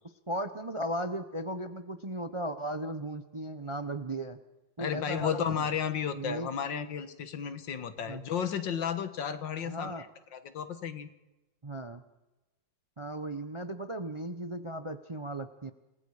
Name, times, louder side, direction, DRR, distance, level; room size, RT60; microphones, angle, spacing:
voice 1, 0.3-4.4 4.8-5.7 6.1-6.5 8.0-8.2 9.6-10.1 11.6-12.0 13.0-15.7, right 1 dB, 25° right, 9 dB, 0.6 m, -36 dB
voice 2, 4.8-10.1 10.3-11.1, left 8 dB, 80° left, 10 dB, 2.1 m, -33 dB
28.0 x 20.0 x 5.0 m, 1.0 s
omnidirectional pair, 2.0 m